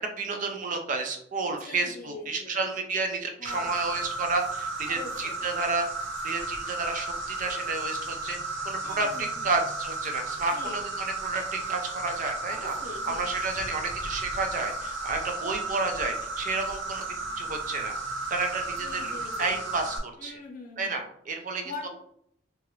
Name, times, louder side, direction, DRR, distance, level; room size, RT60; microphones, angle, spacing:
voice 1, 0.0-5.8 6.2-8.4 8.7-12.7 13.0-17.0 17.4-17.9 18.3-19.1 19.4-20.3 20.8-21.9, right 3 dB, 45° right, 4 dB, 0.4 m, -31 dB
voice 2, 1.6-2.7 3.4-3.9 4.9-5.5 8.8-9.5 10.5-10.8 12.5-13.3 18.8-19.7 20.2-21.0 21.6-21.9, left 3 dB, 50° left, 1 dB, 0.7 m, -42 dB
Insect, 3.4-20.0, right 2 dB, 80° right, 0.7 m, -34 dB
2.8 x 2.4 x 3.1 m, 0.70 s
head